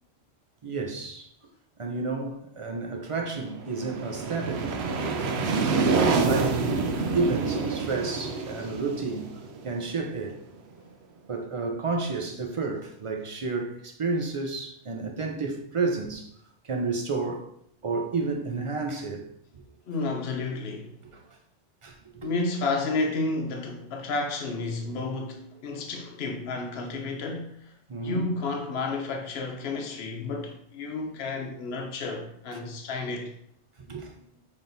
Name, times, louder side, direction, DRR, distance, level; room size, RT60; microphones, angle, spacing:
voice 1, 0.6-1.3 1.8-4.8 5.9-6.6 7.1-9.3 9.6-10.4 11.3-16.3 16.6-17.5 17.8-19.3 19.5-19.6 21.1-21.2 21.8-22.3 27.9-28.2 33.9-34.2, right 3 dB, 45° right, 0.4 m, -31 dB
sound 1, 3.5-10.2, right 4 dB, 70° right, 0.8 m, -27 dB
voice 2, 19.9-21.0 22.2-27.7 28.0-33.3, left 3 dB, 60° left, 1.0 m, -31 dB
5.7 x 3.5 x 2.6 m
omnidirectional pair, 1.2 m